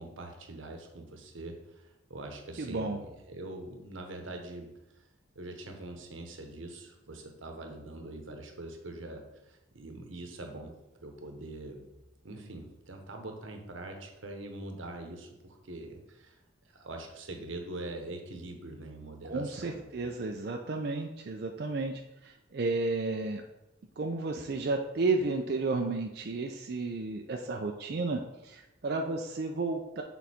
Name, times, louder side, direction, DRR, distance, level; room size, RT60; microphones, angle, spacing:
voice 1, 0.0-5.0 5.3-11.9 12.2-16.4 16.6-19.8, right 2 dB, 85° right, 4 dB, 1.0 m, -43 dB
voice 2, 2.6-3.0 19.3-23.4 24.0-30.0, right 3 dB, 55° right, 2 dB, 0.4 m, -32 dB
6.3 x 3.9 x 4.3 m, 0.94 s
head